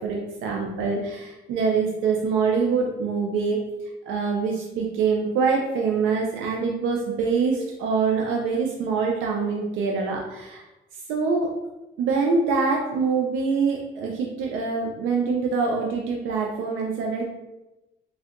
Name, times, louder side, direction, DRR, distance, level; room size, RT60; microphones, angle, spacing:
voice 1, 0.0-3.6 4.1-10.6 11.1-11.5 12.0-17.2, right 5 dB, 90° right, 0 dB, 0.4 m, -24 dB
3.3 x 2.6 x 2.4 m, 1.0 s
cardioid pair, 90°, 20 cm